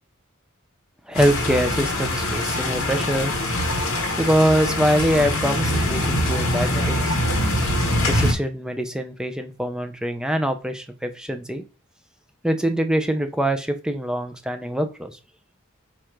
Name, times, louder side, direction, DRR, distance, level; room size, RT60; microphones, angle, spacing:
sound 1, 1.1-8.3, left 1 dB, 70° left, 1.0 m, -23 dB
voice 1, 1.1-3.3 4.2-7.2 8.1-11.6 12.4-15.1, equal, 5° right, 6 dB, 0.4 m, -23 dB
4.5 x 2.4 x 4.5 m, 0.33 s
head